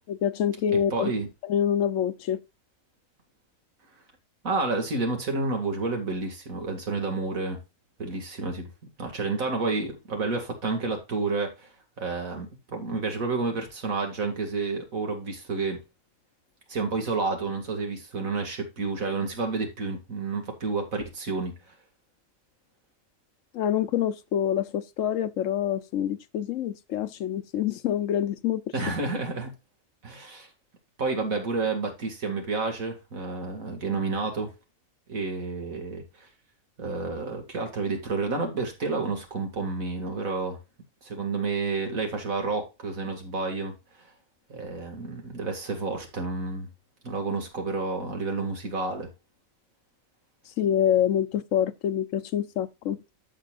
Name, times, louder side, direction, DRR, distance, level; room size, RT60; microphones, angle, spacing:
voice 1, 0.1-1.1 1.5-2.4 23.5-28.6 50.6-53.0, left 9 dB, 75° left, 1.0 m, -26 dB
voice 2, 0.9-1.3 4.4-7.6 8.0-8.7 9.0-11.7 12.0-15.8 16.7-21.6 28.7-29.5 30.0-30.5 31.0-34.5 35.1-36.3 36.8-40.6 41.0-44.1 44.5-46.7 47.0-49.1, right 3 dB, 90° right, 2.5 m, -30 dB
14.0 x 5.4 x 2.4 m
omnidirectional pair, 1.4 m